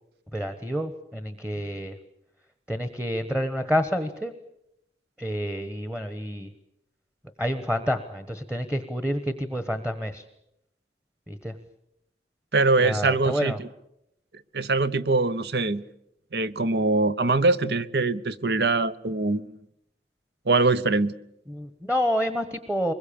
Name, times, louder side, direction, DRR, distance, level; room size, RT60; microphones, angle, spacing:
voice 1, 0.3-1.9 2.7-4.3 5.2-6.5 7.4-10.2 11.3-11.5 12.8-13.6 21.5-22.9, equal, 5° right, 9 dB, 1.2 m, -28 dB
voice 2, 12.5-13.7 14.5-15.8 16.3-19.6 20.5-21.1, right 3 dB, 65° right, 15 dB, 0.9 m, -23 dB
24.0 x 21.5 x 8.7 m, 0.82 s
head